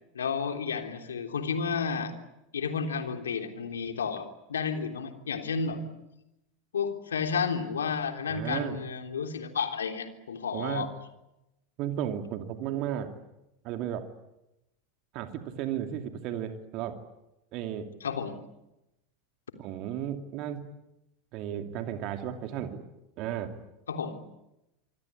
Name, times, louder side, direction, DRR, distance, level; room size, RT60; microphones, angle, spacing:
voice 1, 0.1-2.1 2.5-5.8 6.7-10.9 18.0-18.4 23.9-24.2, left 6 dB, 75° left, 5 dB, 3.5 m, -31 dB
voice 2, 8.3-8.8 10.5-10.9 11.8-13.1 13.6-14.1 15.1-17.0 17.5-17.9 19.6-20.7 21.3-22.8 23.2-23.6, right 10 dB, 50° right, 6 dB, 2.6 m, -34 dB
26.5 x 25.0 x 8.6 m, 0.91 s
figure-of-eight pair, 85°, 0 cm